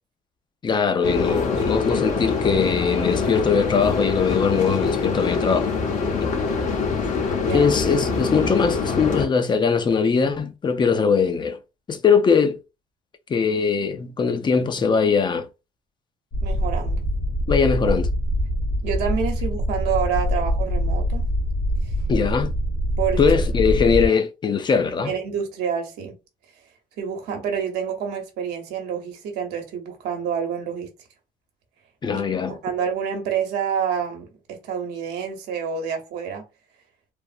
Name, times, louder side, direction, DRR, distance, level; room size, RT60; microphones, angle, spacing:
voice 1, 0.6-5.7 6.2-6.3 7.5-11.6 11.9-12.6 13.3-15.5 17.5-18.1 22.1-22.6 23.2-25.1 32.0-32.6, left 5 dB, 25° left, 0.5 m, -21 dB
sound 1, 1.0-9.3, left 4 dB, 45° left, 0.8 m, -24 dB
voice 2, 7.4-7.7 16.4-17.0 18.8-21.3 23.0-23.2 23.7-23.8 25.0-26.2 27.0-30.9 32.1-36.5, right 7 dB, 80° right, 0.9 m, -28 dB
sound 2, 16.3-24.1, equal, 70° left, 1.2 m, -24 dB
3.3 x 2.0 x 2.5 m
cardioid pair, 110°, 17 cm